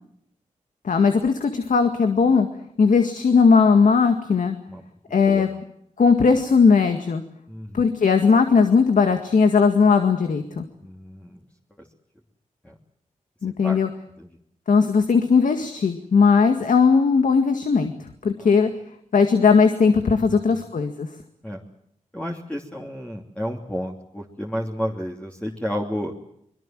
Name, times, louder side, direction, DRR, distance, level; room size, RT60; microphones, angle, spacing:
voice 1, 0.8-2.5 2.8-4.6 5.1-5.5 6.0-7.2 7.7-10.7 13.4-13.9 14.7-17.9 18.2-18.7 19.1-21.1, left 5 dB, 75° left, 6 dB, 2.0 m, -18 dB
voice 2, 5.2-5.6 7.5-7.8 10.8-11.4 12.6-12.7 13.5-13.8 14.2-14.3 18.4-18.5 20.3-20.7 21.4-21.6 22.1-26.1, equal, 10° left, -1 dB, 2.9 m, -31 dB
24.0 x 22.5 x 7.6 m, 0.74 s
cardioid pair, 70°, 13 cm